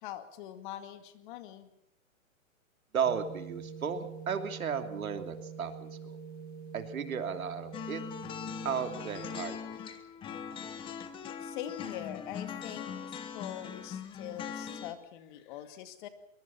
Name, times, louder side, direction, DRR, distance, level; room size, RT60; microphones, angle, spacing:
voice 1, 0.0-1.7 11.4-16.1, left 11 dB, 35° left, 9 dB, 2.2 m, -43 dB
voice 2, 2.9-6.2 6.7-8.0 8.6-9.8, right 7 dB, 90° right, 7 dB, 3.1 m, -34 dB
sound 1, 3.0-9.4, right 6 dB, 20° right, 1.6 m, -45 dB
sound 2, 7.7-14.9, left 7 dB, 10° left, 1.1 m, -41 dB
23.0 x 22.0 x 5.8 m, 0.73 s
hypercardioid pair, 155°, 41 cm